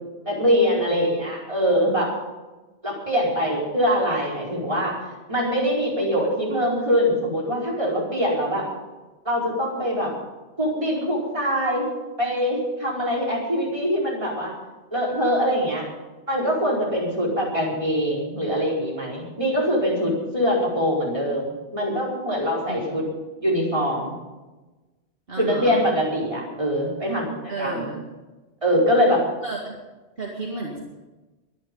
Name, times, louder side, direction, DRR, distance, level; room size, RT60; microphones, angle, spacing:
voice 1, 0.2-2.1 2.8-5.0 5.3-8.7 9.2-10.1 10.6-11.9 12.2-14.5 14.9-15.9 16.3-23.0 23.4-24.1 25.4-27.8 28.6-29.2, equal, 25° right, -4 dB, 4.9 m, -23 dB
voice 2, 22.7-23.1 25.3-25.8 27.5-28.0 29.4-29.6 30.2-30.8, right 2 dB, 55° right, -2 dB, 2.3 m, -32 dB
23.0 x 10.0 x 5.5 m, 1.2 s
omnidirectional pair, 1.2 m